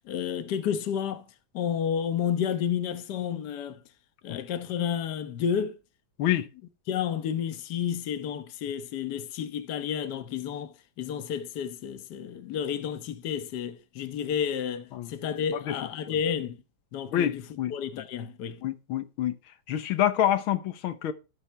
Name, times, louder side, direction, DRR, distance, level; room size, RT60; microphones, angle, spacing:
voice 1, 0.1-1.2 1.5-3.8 4.2-5.8 6.9-16.6 16.9-17.4 17.7-18.6, left 8 dB, 60° left, 1.5 m, -31 dB
voice 2, 17.1-18.0 18.6-19.4 19.7-21.1, left 11 dB, 85° left, 1.8 m, -27 dB
12.5 x 8.8 x 3.4 m
omnidirectional pair, 2.2 m